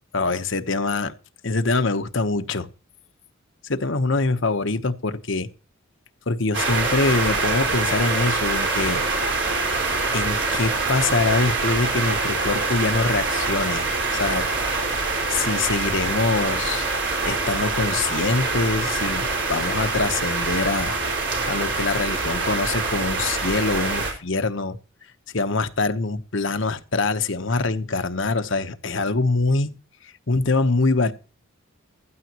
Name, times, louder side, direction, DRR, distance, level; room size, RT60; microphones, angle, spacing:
voice 1, 0.1-1.1 1.4-2.7 3.6-5.5 6.3-9.0 10.1-14.5 15.3-16.9 17.2-20.9 21.5-24.8 25.3-29.8 30.0-31.1, left 3 dB, 60° left, 1.0 m, -24 dB
sound 1, 6.5-24.1, right 3 dB, 55° right, 4.8 m, -25 dB
15.5 x 13.0 x 3.0 m
head